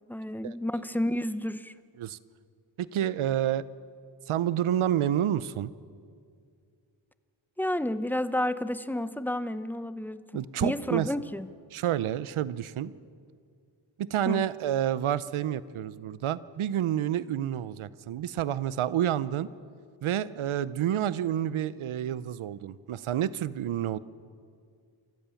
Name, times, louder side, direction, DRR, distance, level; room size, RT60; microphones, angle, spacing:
voice 1, 0.1-1.7 7.6-11.5 14.3-14.4, left 1 dB, 5° left, 13 dB, 0.8 m, -31 dB
voice 2, 2.8-3.7 4.3-5.7 10.3-11.1 11.7-12.9 14.0-19.5 20.0-24.0, right 11 dB, 85° right, 17 dB, 0.7 m, -29 dB
27.5 x 14.0 x 7.1 m, 2.2 s
cardioid pair, 55°, 48 cm